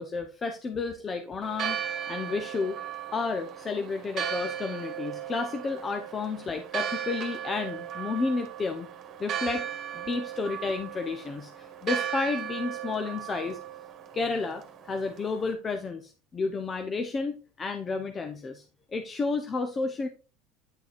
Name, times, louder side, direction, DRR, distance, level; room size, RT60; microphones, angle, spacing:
voice 1, 0.0-1.8 2.1-2.8 3.1-8.9 9.2-13.6 14.1-18.6 18.9-20.1, left 4 dB, 20° left, 6 dB, 0.7 m, -31 dB
Church bell, 1.4-15.5, right 9 dB, 35° right, 1.6 m, -36 dB
9.7 x 6.8 x 2.5 m, 0.34 s
cardioid pair, 155°, 0 cm